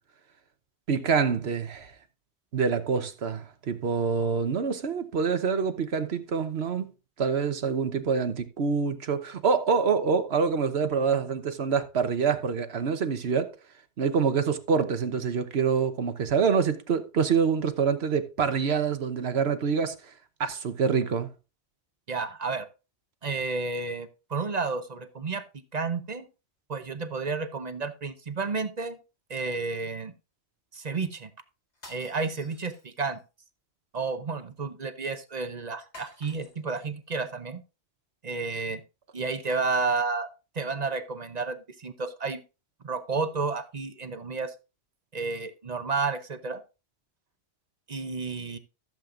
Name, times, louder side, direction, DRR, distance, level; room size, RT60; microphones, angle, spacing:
voice 1, 0.9-1.9 2.5-6.9 7.2-13.5 14.0-19.9 20.4-21.3, right 6 dB, 70° right, 1.2 m, -26 dB
voice 2, 22.1-22.7 23.2-25.4 25.7-26.3 26.7-29.0 29.3-30.1 30.7-31.3 31.9-33.2 33.9-37.6 38.2-38.8 39.1-40.3 40.5-42.4 42.8-44.5 45.1-46.6 47.9-48.6, right 4 dB, 40° right, 0.8 m, -31 dB
sound 1, 31.7-33.2 35.9-36.9, left 1 dB, 80° left, 3.8 m, -50 dB
15.0 x 7.5 x 2.5 m
omnidirectional pair, 1.1 m